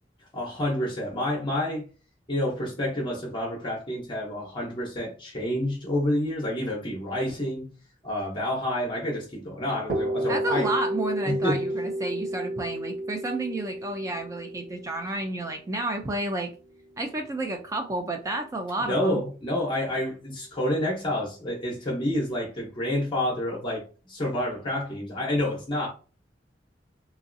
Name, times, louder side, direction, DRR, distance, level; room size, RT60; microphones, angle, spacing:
voice 1, 0.3-1.9 2.3-7.7 8.0-10.7 11.3-11.6 18.8-23.8 24.1-25.9, left 1 dB, 30° left, 0.8 m, -28 dB
sound 1, 9.9-17.6, right 1 dB, 70° right, 0.8 m, -32 dB
voice 2, 10.3-16.5 17.0-19.2, right 2 dB, 15° right, 0.3 m, -31 dB
3.0 x 2.6 x 2.5 m
head